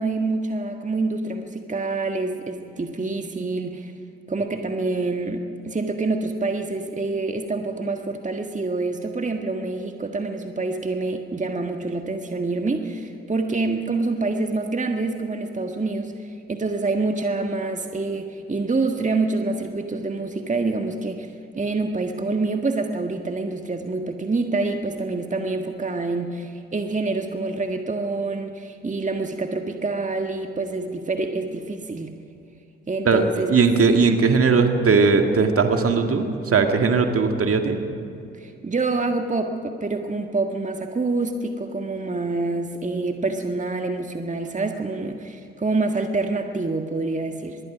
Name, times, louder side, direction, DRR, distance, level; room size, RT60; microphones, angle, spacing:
voice 1, 0.0-3.9 4.3-32.2 32.9-33.5 38.3-47.6, right 3 dB, 25° right, 5 dB, 1.7 m, -26 dB
voice 2, 33.5-37.8, right 4 dB, 45° right, 5 dB, 2.1 m, -18 dB
25.0 x 21.5 x 5.1 m, 2.6 s
hypercardioid pair, 40°, 31 cm